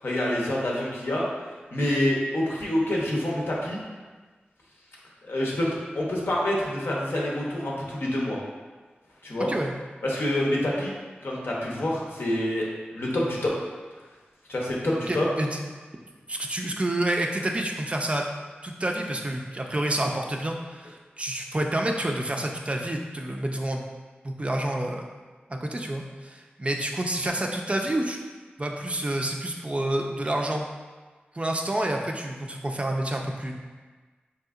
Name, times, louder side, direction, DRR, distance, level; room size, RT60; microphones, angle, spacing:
voice 1, 0.0-1.2 1.7-3.8 5.2-8.4 9.2-9.5 10.0-10.9 11.2-12.7 12.9-13.5 14.5-15.3, left 1 dB, 80° left, -4 dB, 0.7 m, -27 dB
voice 2, 15.1-15.6 16.3-18.2 18.6-23.8 24.2-25.0 25.5-28.2 28.6-30.6 31.3-33.5, right 1 dB, 30° right, 1 dB, 0.4 m, -28 dB
3.5 x 2.7 x 2.4 m, 1.4 s
cardioid pair, 40°, 4 cm